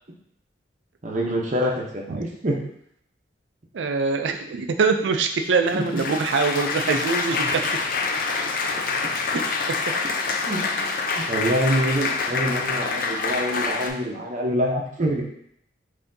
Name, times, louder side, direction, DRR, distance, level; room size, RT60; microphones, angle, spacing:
voice 1, 1.0-2.6 5.7-5.9 10.4-10.6 11.1-15.2, equal, 45° right, 0 dB, 0.8 m, -25 dB
voice 2, 3.7-7.6 9.2-9.4, right 4 dB, 80° right, 6 dB, 0.4 m, -23 dB
Applause, 5.4-13.9, left 4 dB, 50° left, 0.5 m, -26 dB
5.6 x 2.8 x 2.7 m, 0.71 s
head